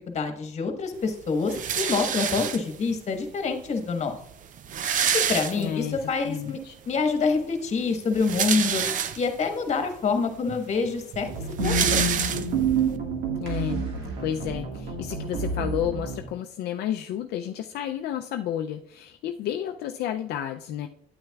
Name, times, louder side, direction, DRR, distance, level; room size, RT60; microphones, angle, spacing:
voice 1, 0.0-4.1 5.1-6.6 6.9-8.8 9.1-11.3 11.6-12.1, left 4 dB, 40° left, 6 dB, 1.3 m, -26 dB
sound 1, 1.5-2.9 3.8-3.9 4.1-4.2 4.4-6.0 6.5-6.6 8.0-9.5 10.1-10.2 10.5-12.8, right 8 dB, 50° right, 0.6 m, -27 dB
voice 2, 5.6-6.0 6.2-6.7 13.4-13.8 14.2-20.9, left 10 dB, 70° left, 4 dB, 0.5 m, -31 dB
sound 2, 11.2-16.3, right 4 dB, 85° right, 1.8 m, -28 dB
8.8 x 8.8 x 2.3 m, 0.68 s
cardioid pair, 110°, 17 cm